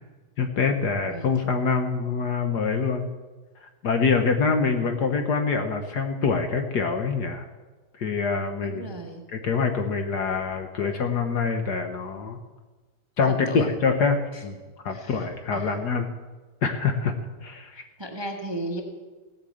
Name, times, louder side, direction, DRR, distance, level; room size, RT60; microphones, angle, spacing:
voice 1, 0.4-3.1 3.6-7.4 8.0-8.9 9.3-12.4 13.2-14.6 14.8-16.1 16.6-17.1 17.4-17.8, left 5 dB, 55° left, 6 dB, 1.4 m, -25 dB
voice 2, 1.1-1.6 8.6-9.3 13.2-13.7 14.3-14.4 14.9-15.8 17.7-18.8, right 1 dB, 15° right, 3 dB, 1.0 m, -36 dB
17.0 x 8.4 x 7.7 m, 1.3 s
omnidirectional pair, 2.4 m